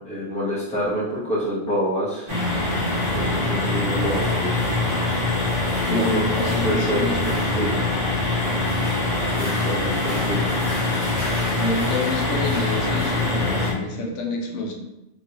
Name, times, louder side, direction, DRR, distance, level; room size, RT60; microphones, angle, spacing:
voice 1, 0.0-2.3 3.1-4.6 6.0-6.2 6.6-7.8 9.3-10.7, equal, 10° left, -7 dB, 0.6 m, -27 dB
sound 1, 2.3-13.7, left 2 dB, 35° right, 0.7 m, -23 dB
voice 2, 5.9-7.3 11.5-14.7, left 2 dB, 80° left, 0 dB, 0.9 m, -28 dB
2.9 x 2.6 x 2.8 m, 0.91 s
omnidirectional pair, 1.2 m